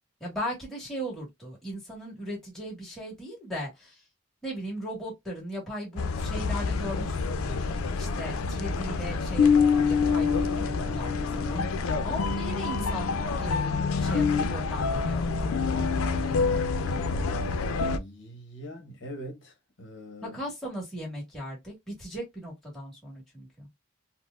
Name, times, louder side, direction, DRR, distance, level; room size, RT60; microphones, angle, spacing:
voice 1, 0.2-4.0 4.4-11.6 12.0-17.3 20.2-23.7, equal, ahead, 1.4 m, -38 dB
sound 1, 6.0-18.0, left 5 dB, 85° left, 0.4 m, -26 dB
voice 2, 11.3-11.8 17.9-20.4, equal, 60° left, 1.0 m, -42 dB
4.3 x 2.0 x 2.3 m
head